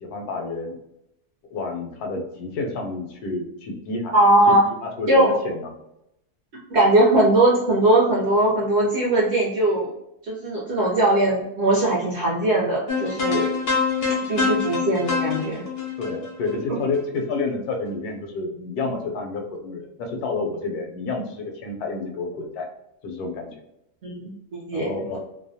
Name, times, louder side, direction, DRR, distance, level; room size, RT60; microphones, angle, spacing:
voice 1, 0.0-0.8 1.5-4.1 4.5-4.6 4.8-5.8 16.0-22.7 23.0-23.6 24.7-25.2, left 3 dB, 80° left, 2 dB, 1.1 m, -29 dB
voice 2, 4.1-4.6 5.1-5.4 6.7-9.9 10.2-13.5 14.3-15.7 24.0-25.2, right 1 dB, 60° right, -5 dB, 0.7 m, -20 dB
sound 1, 12.9-17.2, left 5 dB, 65° left, 0.6 m, -25 dB
2.7 x 2.1 x 2.6 m, 0.82 s
omnidirectional pair, 1.6 m